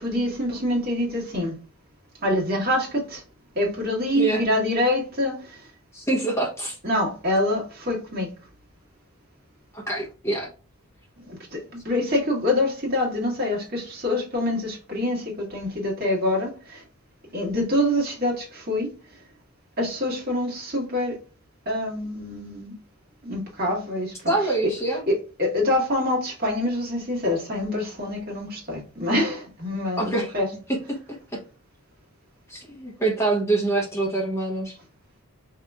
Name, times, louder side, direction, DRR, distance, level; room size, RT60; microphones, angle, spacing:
voice 1, 0.0-1.6 2.2-3.2 3.5-5.7 6.8-8.3 11.2-16.8 17.3-19.2 19.8-21.2 21.6-22.8 23.2-30.5 30.8-30.9, left 1 dB, 40° right, 1.5 m, -26 dB
voice 2, 5.9-6.8 9.7-10.5 24.3-25.0 30.0-30.3 30.9-31.0 31.3-31.4 32.5-34.8, right 2 dB, 10° left, 0.9 m, -25 dB
4.8 x 2.9 x 2.3 m
head